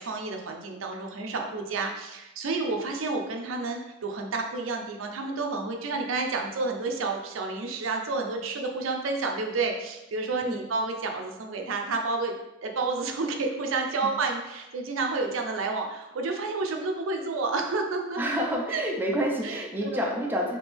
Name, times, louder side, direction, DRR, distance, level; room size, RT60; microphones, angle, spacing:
voice 1, 0.0-12.3 12.6-18.2 18.7-18.8 19.4-20.1, right 3 dB, 85° right, 3 dB, 0.5 m, -30 dB
voice 2, 18.2-20.6, equal, 10° right, -1 dB, 0.5 m, -28 dB
3.4 x 2.8 x 3.4 m, 0.97 s
head